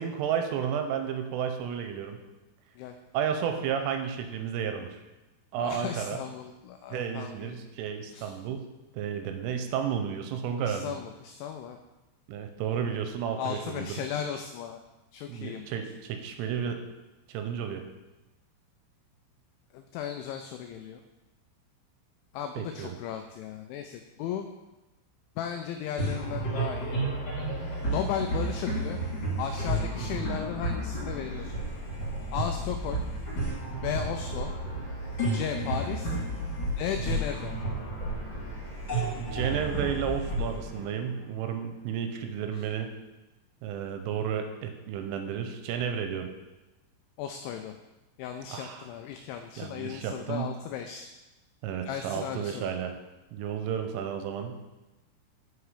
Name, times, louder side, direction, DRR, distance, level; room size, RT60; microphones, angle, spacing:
voice 1, 0.0-2.2 3.1-5.0 5.5-6.2 6.9-8.6 8.9-11.0 12.3-14.0 15.3-16.8 17.3-17.8 22.6-23.0 30.0-30.1 39.0-42.9 43.6-46.3 48.5-48.8 49.6-50.5 51.6-53.0 53.3-54.5, right 8 dB, 85° right, 6 dB, 3.1 m, -32 dB
voice 2, 5.6-7.6 8.1-8.3 10.6-11.8 13.4-14.8 15.1-15.6 19.7-21.0 22.3-24.5 25.4-27.0 27.8-29.0 29.4-31.5 32.3-33.1 33.8-34.5 35.3-36.2 36.8-37.6 47.2-47.8 48.2-51.1 51.8-52.7, left 9 dB, 90° left, 5 dB, 2.6 m, -35 dB
sound 1, 26.0-41.6, right 1 dB, 30° left, 2.7 m, -32 dB
7.9 x 5.6 x 4.9 m, 1.1 s
omnidirectional pair, 5.8 m